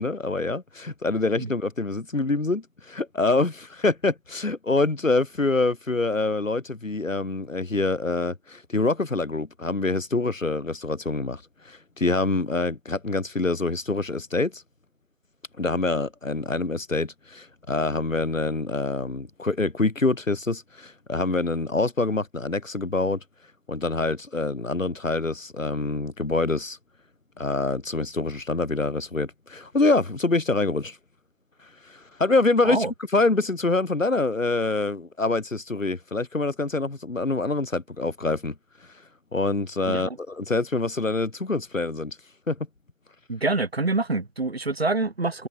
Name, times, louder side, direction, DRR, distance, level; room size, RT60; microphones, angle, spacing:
voice 1, 0.0-14.6 15.6-23.2 23.7-26.8 27.4-31.0 31.8-32.9 33.1-38.5 39.3-42.2 42.5-42.7, left 3 dB, 65° left, 2.8 m, -25 dB
voice 2, 39.9-40.2 43.3-45.5, right 3 dB, 45° right, 2.7 m, -26 dB
figure-of-eight pair, 170°, 41 cm